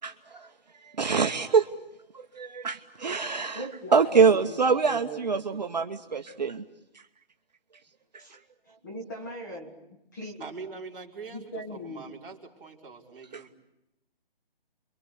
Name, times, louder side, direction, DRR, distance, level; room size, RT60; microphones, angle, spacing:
voice 1, 0.0-1.7 2.1-6.6 6.9-7.1 8.1-8.4 13.3-13.5, right 5 dB, 45° right, 4 dB, 1.0 m, -25 dB
voice 2, 3.5-5.6 8.2-8.4 8.8-10.5 11.3-12.1, equal, 20° left, 1 dB, 1.5 m, -40 dB
voice 3, 10.4-13.6, right 4 dB, 15° right, -7 dB, 3.3 m, -43 dB
29.5 x 23.5 x 8.2 m, 0.90 s
hypercardioid pair, 175°, 29 cm